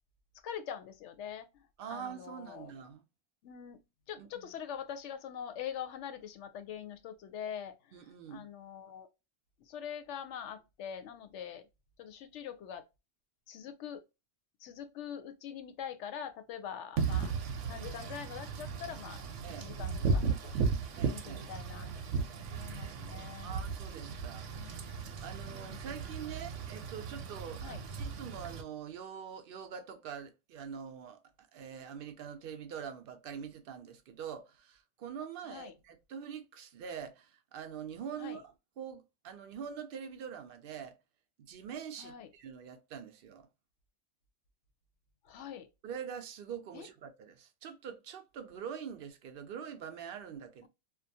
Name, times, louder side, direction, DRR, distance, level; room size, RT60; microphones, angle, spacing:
voice 1, 0.4-1.6 1.9-2.7 3.4-3.8 4.1-7.7 8.3-9.1 9.7-11.6 12.0-12.8 13.5-14.0 14.6-17.3 17.7-19.2 19.6-20.5 21.0-22.1 22.6-23.5 24.5-24.9 25.5-25.8 27.6-27.8 35.4-35.7 38.2-38.4 42.0-42.3 45.2-45.7 46.7-46.9 50.6-50.7, left 8 dB, 75° left, 0.9 m, -43 dB
voice 2, 1.8-3.0 4.2-4.5 7.9-8.5 19.4-19.7 20.9-21.5 23.4-24.7 25.2-31.2 31.5-41.0 41.4-43.5 45.8-50.7, right 8 dB, 60° right, 0.6 m, -44 dB
Wind / Rain, 17.0-28.6, right 5 dB, 85° right, 0.9 m, -36 dB
2.5 x 2.2 x 2.6 m
omnidirectional pair, 1.2 m